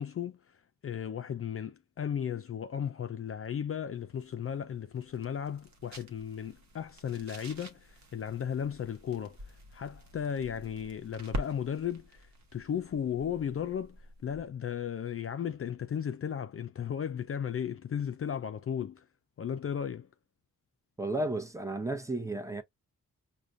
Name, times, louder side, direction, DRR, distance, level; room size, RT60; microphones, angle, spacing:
voice 1, 0.0-19.1 19.4-20.1, left 8 dB, 45° left, 0.4 m, -35 dB
sound 1, 4.0-14.6, equal, 60° right, 1.0 m, -46 dB
voice 2, 21.0-22.6, right 2 dB, 10° right, 0.8 m, -33 dB
4.8 x 2.3 x 2.5 m
cardioid pair, 55°, 33 cm